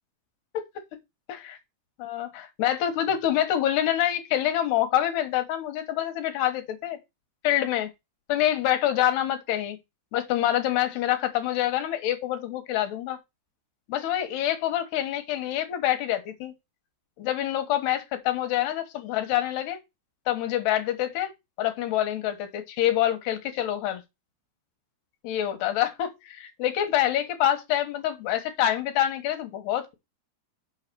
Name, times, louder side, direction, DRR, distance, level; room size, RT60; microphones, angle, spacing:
voice 1, 2.0-7.0 7.4-7.9 8.3-9.8 10.1-13.2 13.9-16.5 17.2-19.8 20.3-21.3 21.6-24.0 25.2-29.9, left 12 dB, 75° left, 3.2 m, -26 dB
6.5 x 5.8 x 6.7 m
omnidirectional pair, 5.0 m